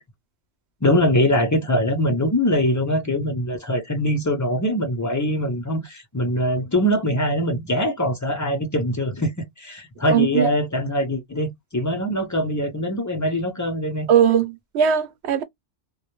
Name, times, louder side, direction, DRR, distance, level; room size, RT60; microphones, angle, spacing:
voice 1, 0.8-14.1, equal, 30° left, 0.3 m, -22 dB
voice 2, 10.1-10.5 14.1-15.4, right 8 dB, 70° right, 0.8 m, -19 dB
2.2 x 2.0 x 2.9 m
omnidirectional pair, 1.2 m